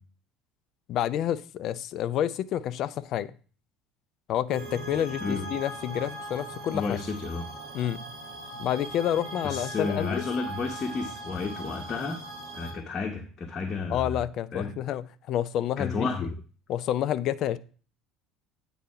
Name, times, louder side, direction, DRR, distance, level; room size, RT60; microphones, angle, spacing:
voice 1, 0.9-3.3 4.3-7.0 7.7-8.0 8.6-10.2 13.9-16.3 16.7-17.6, left 11 dB, 50° left, 0.5 m, -29 dB
sound 1, 4.5-12.7, right 2 dB, 55° right, 2.2 m, -40 dB
voice 2, 6.7-7.5 9.4-12.2 12.5-14.2 14.5-14.7 15.8-16.3, left 4 dB, 35° left, 1.1 m, -31 dB
8.5 x 4.1 x 5.7 m
figure-of-eight pair, 65°, 0 cm